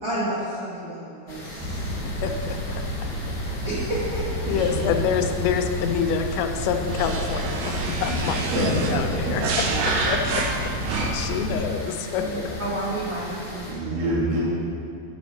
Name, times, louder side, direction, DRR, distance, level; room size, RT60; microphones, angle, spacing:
voice 1, 0.0-1.9 2.2-2.3 3.6-4.6 8.3-8.4 12.6-14.0, right 1 dB, 75° right, -10 dB, 1.3 m, -31 dB
sound 1, 1.3-13.7, equal, 35° left, 1.6 m, -37 dB
sound 2, 1.6-11.6, equal, 70° left, 2.6 m, -31 dB
voice 2, 2.0-2.6 4.5-9.4 10.1-10.2 10.9-12.2, left 7 dB, 85° left, 5 dB, 2.8 m, -27 dB
voice 3, 3.6-4.0 4.4-4.9 7.6-8.2 8.5-9.6 11.3-11.7 12.1-12.6 13.7-14.4, right 1 dB, 50° right, -6 dB, 2.7 m, -29 dB
sound 3, 6.9-11.4, right 3 dB, 90° right, 1.9 m, -28 dB
10.0 x 4.3 x 6.4 m, 2.5 s
omnidirectional pair, 5.1 m